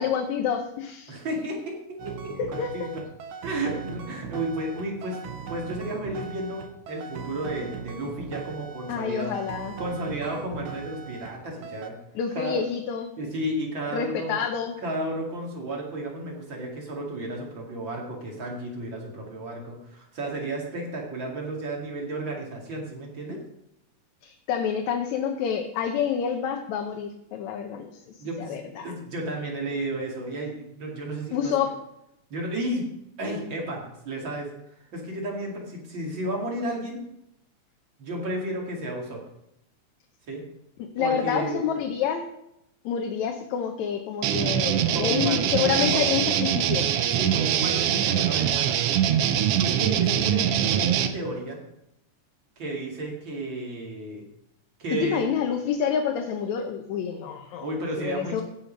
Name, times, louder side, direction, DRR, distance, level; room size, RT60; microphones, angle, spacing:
voice 1, 0.0-1.2 2.4-2.7 8.9-9.7 12.2-13.1 13.9-14.7 24.2-28.0 28.4-28.9 31.3-31.7 41.0-42.3 42.9-46.9 54.9-57.7 58.0-58.4, left 7 dB, 75° left, 3 dB, 2.1 m, -28 dB
voice 2, 1.1-2.3 2.7-3.0 3.4-9.4 9.8-11.9 12.3-12.6 13.2-14.4 14.8-23.4 28.2-31.6 32.3-32.9 33.2-34.5 34.9-37.1 38.0-39.2 40.3-40.4 41.0-41.6 44.9-46.0 47.1-48.7 49.6-51.6 52.6-54.2 54.8-55.3 57.6-58.4, right 1 dB, 40° right, -1 dB, 2.8 m, -32 dB
sound 1, 2.0-11.4 11.6-11.9, right 6 dB, 65° right, 1.3 m, -39 dB
sound 2, 44.2-51.1, right 10 dB, 90° right, 1.3 m, -23 dB
16.0 x 5.7 x 5.1 m, 0.83 s
omnidirectional pair, 3.4 m